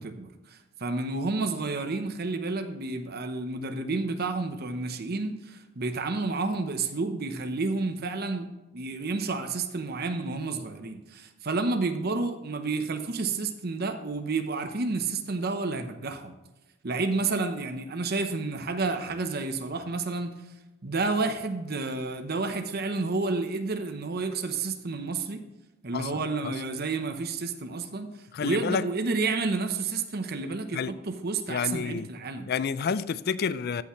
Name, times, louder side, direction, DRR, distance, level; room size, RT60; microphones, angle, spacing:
voice 1, 0.0-8.5 8.7-16.3 16.8-20.3 20.8-25.4 25.8-28.1 28.4-32.5, right 3 dB, 50° right, 0.9 m, -30 dB
voice 2, 25.9-26.5 28.3-28.8 30.7-31.0 31.5-32.1 32.5-33.8, left 6 dB, 50° left, 0.4 m, -29 dB
14.5 x 5.9 x 3.1 m
head